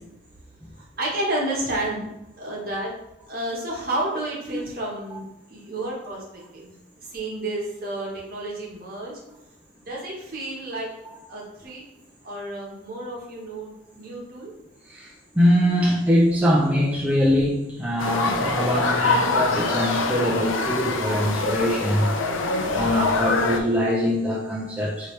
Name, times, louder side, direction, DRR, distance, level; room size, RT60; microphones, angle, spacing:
voice 1, 1.0-2.1 2.4-2.9 3.3-5.2 5.5-6.2 6.5-6.7 7.1-9.1 9.8-10.9 11.3-11.8 12.2-14.5, right 1 dB, 50° right, -3 dB, 1.1 m, -30 dB
voice 2, 14.9-22.1 22.7-25.1, equal, 5° right, -5 dB, 0.4 m, -22 dB
sound 1, 18.0-23.6, left 3 dB, 85° left, 0.5 m, -24 dB
4.7 x 2.8 x 3.2 m, 0.86 s
head